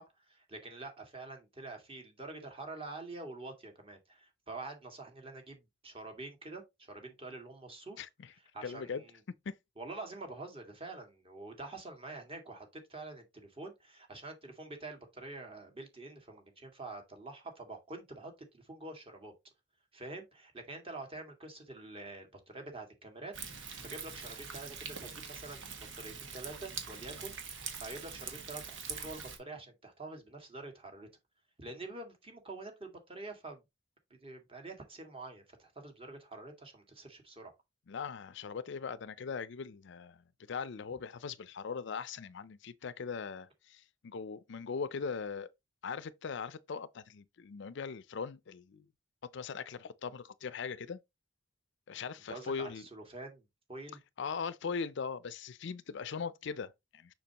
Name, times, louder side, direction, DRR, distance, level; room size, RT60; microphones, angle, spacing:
voice 1, 0.0-6.6 6.9-8.1 8.5-9.2 9.8-19.3 19.9-27.4 27.8-31.1 31.6-33.6 34.1-37.5 52.3-54.0, right 2 dB, 30° right, 2.0 m, -46 dB
voice 2, 8.0-8.3 8.6-9.0 9.5-9.6 37.9-45.5 45.8-48.9 49.3-51.0 51.9-52.8 54.2-57.1, left 5 dB, 65° left, 0.5 m, -40 dB
Thunder, 23.3-29.4, right 6 dB, 80° right, 1.6 m, -44 dB
6.8 x 5.8 x 2.9 m
head